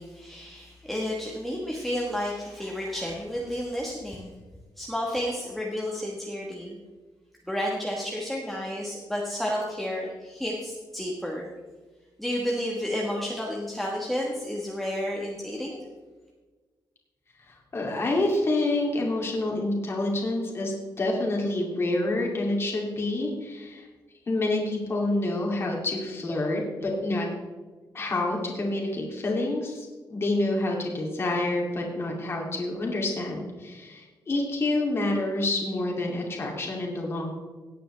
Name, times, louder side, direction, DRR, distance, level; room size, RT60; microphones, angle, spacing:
voice 1, 0.0-4.3 4.8-6.8 7.5-11.5 12.2-15.8, equal, ahead, -2 dB, 1.3 m, -31 dB
voice 2, 17.5-23.9 24.3-27.3 27.9-37.3, left 2 dB, 35° left, -1 dB, 2.5 m, -28 dB
17.5 x 9.0 x 3.3 m, 1.3 s
wide cardioid pair, 175°, 8 cm